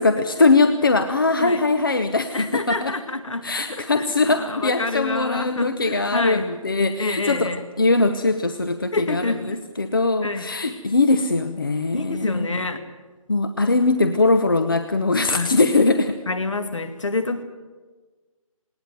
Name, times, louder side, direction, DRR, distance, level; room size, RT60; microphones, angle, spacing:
voice 1, 0.0-3.0 3.4-7.5 7.8-12.5 13.3-16.2, left 3 dB, 40° left, 9 dB, 0.8 m, -21 dB
voice 2, 2.3-6.4 7.0-7.6 8.9-9.6 10.2-10.5 11.9-12.8 15.3-15.5 16.3-17.4, left 3 dB, 60° left, 9 dB, 2.2 m, -27 dB
19.5 x 19.0 x 9.2 m, 1.3 s
figure-of-eight pair, 175°, 18 cm